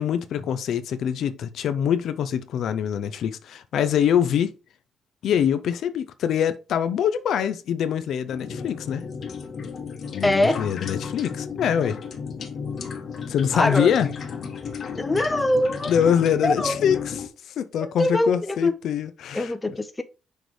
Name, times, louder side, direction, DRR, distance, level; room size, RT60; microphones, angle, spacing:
voice 1, 0.0-4.5 5.2-9.0 10.1-12.0 13.3-14.1 15.9-19.8, left 8 dB, 70° left, 0.5 m, -24 dB
sound 1, 8.3-17.3, left 6 dB, 55° left, 1.2 m, -34 dB
voice 2, 10.2-10.6 13.5-13.9 15.0-15.9 16.4-16.8 17.8-18.7 19.3-20.0, left 1 dB, 15° left, 0.8 m, -23 dB
6.2 x 3.2 x 4.7 m
cardioid pair, 90°, 0 cm